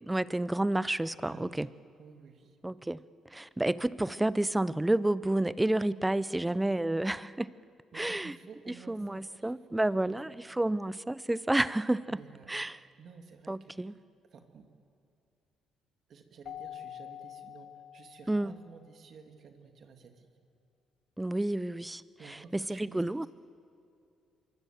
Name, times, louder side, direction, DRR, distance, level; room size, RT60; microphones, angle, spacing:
voice 1, 0.0-1.7 2.6-3.0 3.3-7.5 7.9-8.3 8.7-12.2 12.5-12.8 13.5-13.9 18.3-18.5 21.2-22.0 22.3-23.3, right 1 dB, 10° right, 18 dB, 0.7 m, -30 dB
voice 2, 1.3-1.7 2.0-2.6 7.9-10.4 12.1-12.7 13.0-14.0 14.3-14.7 16.1-20.3 22.2-23.3, right 5 dB, 60° right, 4 dB, 2.7 m, -53 dB
Keyboard (musical), 16.4-18.7, left 11 dB, 65° left, 0.5 m, -46 dB
25.5 x 23.0 x 7.7 m, 2.5 s
supercardioid pair, 60°, 0 cm